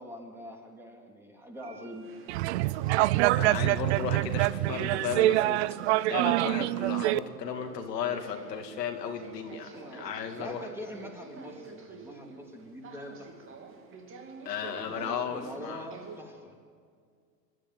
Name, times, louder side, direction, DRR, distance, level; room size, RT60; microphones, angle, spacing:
voice 1, 0.0-2.2 9.7-13.6 14.8-16.6, equal, 5° right, 1 dB, 3.0 m, -44 dB
sound 1, 1.5-16.2, right 3 dB, 25° right, 2.7 m, -49 dB
sound 2, 2.3-7.2, right 17 dB, 45° right, 0.5 m, -25 dB
voice 2, 3.2-5.6 6.1-10.7 14.4-15.9, left 7 dB, 75° left, 4 dB, 2.6 m, -35 dB
27.5 x 12.5 x 9.5 m, 2.1 s
hypercardioid pair, 110°, 49 cm